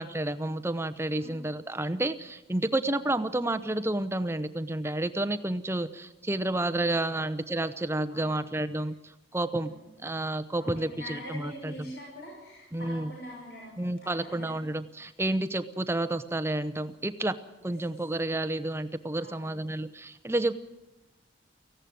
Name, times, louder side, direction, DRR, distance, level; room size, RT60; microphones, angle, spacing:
voice 1, 0.0-9.0 9.3-9.7 10.0-11.7 12.7-13.1 13.8-17.4 17.6-20.6, right 1 dB, 15° right, 11 dB, 0.8 m, -30 dB
voice 2, 8.1-8.5 9.6-9.9 10.6-14.6 17.6-17.7 19.2-19.6, left 1 dB, 55° left, -2 dB, 6.3 m, -44 dB
18.0 x 15.5 x 9.4 m, 1.0 s
head